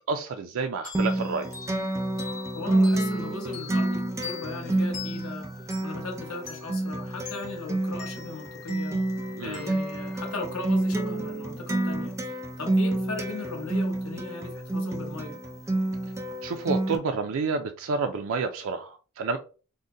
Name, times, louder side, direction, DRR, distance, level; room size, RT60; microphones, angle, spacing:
voice 1, 0.1-1.5 9.4-9.7 16.4-19.4, right 4 dB, 65° right, 0.4 m, -29 dB
sound 1, 0.8-11.1, left 6 dB, 40° left, 1.6 m, -45 dB
Acoustic guitar, 0.9-17.0, right 1 dB, 15° right, 0.5 m, -29 dB
voice 2, 2.5-15.4, left 2 dB, 70° left, 1.2 m, -38 dB
3.9 x 2.1 x 3.7 m
head